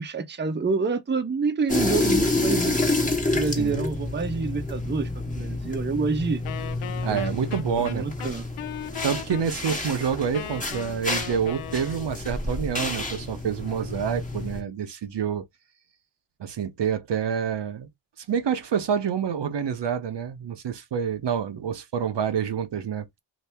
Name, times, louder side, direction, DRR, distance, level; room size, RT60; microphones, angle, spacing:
voice 1, 0.0-2.8 3.3-6.4 7.1-7.5 7.9-8.5, right 4 dB, 25° right, 0.6 m, -27 dB
sound 1, 1.7-14.6, left 2 dB, 15° left, 1.2 m, -29 dB
Wind instrument woodwind instrument, 6.4-12.3, left 10 dB, 90° left, 0.6 m, -38 dB
voice 2, 7.0-8.3 9.0-15.4 16.4-17.9 18.2-23.1, right 7 dB, 60° right, 0.7 m, -27 dB
2.8 x 2.7 x 3.3 m
cardioid pair, 80°, 49 cm